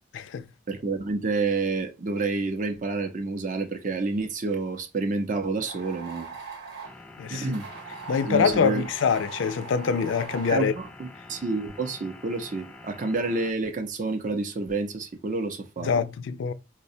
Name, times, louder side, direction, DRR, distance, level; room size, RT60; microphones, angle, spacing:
voice 1, 0.1-0.4 7.2-7.5 8.1-10.7 15.8-16.5, left 6 dB, 80° left, 0.4 m, -24 dB
voice 2, 0.7-6.4 7.3-7.7 8.2-8.9 10.5-16.0, right 3 dB, 45° right, 0.5 m, -29 dB
sound 1, 5.6-7.0 7.5-10.6, right 5 dB, 60° right, 0.9 m, -41 dB
sound 2, 6.8-13.5, left 2 dB, 5° left, 0.4 m, -47 dB
4.8 x 2.1 x 2.6 m
head